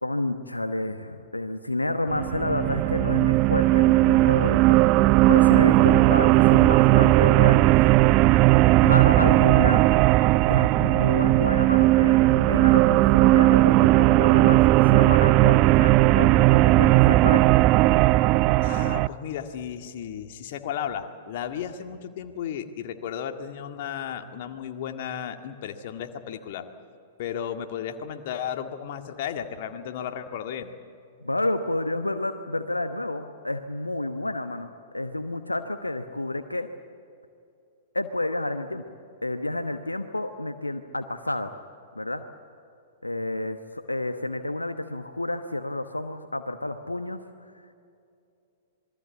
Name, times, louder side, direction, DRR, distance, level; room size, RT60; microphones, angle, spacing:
voice 1, 0.0-7.8 8.8-9.9 10.5-17.5 31.2-36.7 37.9-38.9 39.2-41.5 41.9-42.2 43.0-47.2 47.5-47.6, left 2 dB, 85° left, 8 dB, 1.0 m, -30 dB
sound 1, 2.1-19.1, right 18 dB, 35° right, 0.5 m, -18 dB
voice 2, 18.6-26.7 27.2-30.7, left 9 dB, 50° left, 6 dB, 1.9 m, -34 dB
27.0 x 21.5 x 8.4 m, 2.6 s
figure-of-eight pair, 105°, 0 cm